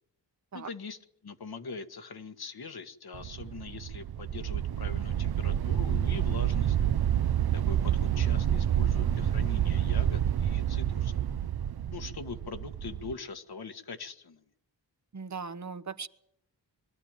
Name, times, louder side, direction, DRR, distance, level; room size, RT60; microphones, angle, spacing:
voice 1, 0.5-1.0 1.2-6.8 7.5-11.3 11.9-14.4, left 4 dB, 60° left, 9 dB, 1.6 m, -42 dB
sound 1, 3.1-13.1, right 10 dB, 60° right, 0.7 m, -28 dB
voice 2, 15.1-16.1, right 5 dB, 40° right, 12 dB, 1.0 m, -38 dB
22.0 x 13.0 x 9.0 m, 0.78 s
cardioid pair, 65°, 42 cm